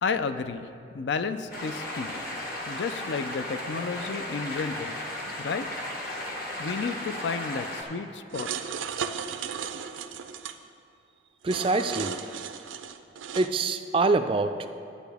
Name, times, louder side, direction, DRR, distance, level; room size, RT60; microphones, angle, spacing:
voice 1, 0.0-0.7 0.9-2.1 2.7-5.0 5.4-5.7 6.6-8.5, left 5 dB, 65° left, 11 dB, 0.4 m, -31 dB
sound 1, 1.5-7.8, left 1 dB, 50° left, 1.2 m, -35 dB
sound 2, 8.3-10.6 11.4-13.5, right 7 dB, 85° right, 0.5 m, -35 dB
voice 2, 11.4-12.2 13.3-14.7, right 3 dB, 30° right, 8 dB, 0.3 m, -25 dB
12.0 x 9.1 x 3.5 m, 2.4 s
head